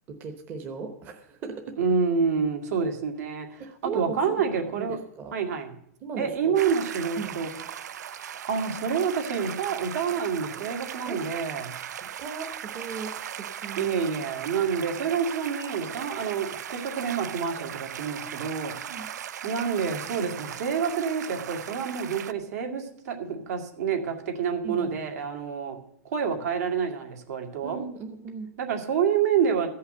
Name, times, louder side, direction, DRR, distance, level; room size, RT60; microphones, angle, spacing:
voice 1, 0.1-1.6 3.8-4.4 4.8-5.4 6.0-6.5 7.2-7.4 11.1-11.2 12.0-13.1 13.4-13.9 18.9-19.0 24.6-25.0 27.6-28.5, right 5 dB, 20° right, 4 dB, 0.9 m, -37 dB
voice 2, 1.8-5.0 5.3-5.7 6.2-7.5 7.7-8.1 8.5-11.7 13.8-19.0 19.4-25.8 26.0-27.8 28.6-29.7, right 6 dB, 70° right, 4 dB, 2.3 m, -28 dB
sound 1, 6.6-22.3, right 9 dB, 85° right, 0.6 m, -38 dB
14.5 x 5.6 x 8.0 m, 0.73 s
supercardioid pair, 160°, 9 cm